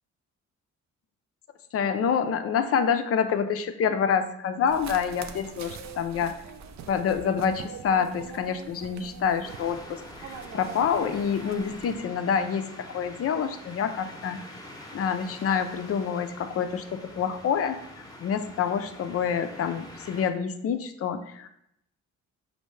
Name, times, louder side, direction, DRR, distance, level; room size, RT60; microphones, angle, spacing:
voice 1, 1.7-6.4 6.9-14.4 14.9-17.8 18.2-21.5, left 7 dB, 50° left, 9 dB, 0.5 m, -27 dB
sound 1, 4.7-12.0, right 6 dB, 65° right, 0.5 m, -43 dB
sound 2, 9.4-20.3, left 1 dB, 10° left, 0.8 m, -45 dB
5.4 x 2.6 x 3.2 m, 0.78 s
cardioid pair, 90°, 30 cm